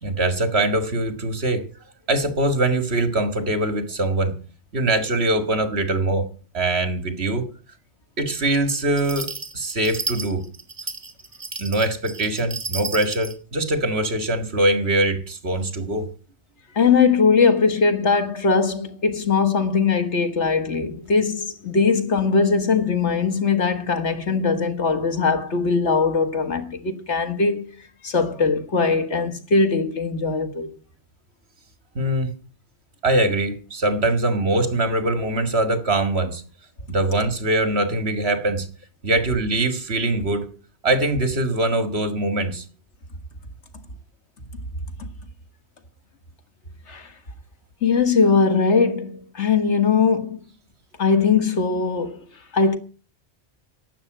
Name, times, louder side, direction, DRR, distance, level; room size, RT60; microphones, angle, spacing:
voice 1, 0.0-1.7 2.1-4.4 4.7-6.3 6.5-7.5 8.2-10.4 11.6-16.1 32.0-32.4 33.0-36.4 36.9-38.7 39.0-40.5 40.8-42.7, right 2 dB, 65° right, 2.2 m, -22 dB
sound 1, 9.0-13.4, right 3 dB, 40° right, 1.9 m, -32 dB
voice 2, 16.7-27.7 28.0-30.7 45.0-45.1 46.9-47.1 47.8-50.4 51.0-52.3 52.5-52.8, left 5 dB, 85° left, 2.1 m, -20 dB
12.0 x 8.8 x 9.1 m
omnidirectional pair, 1.1 m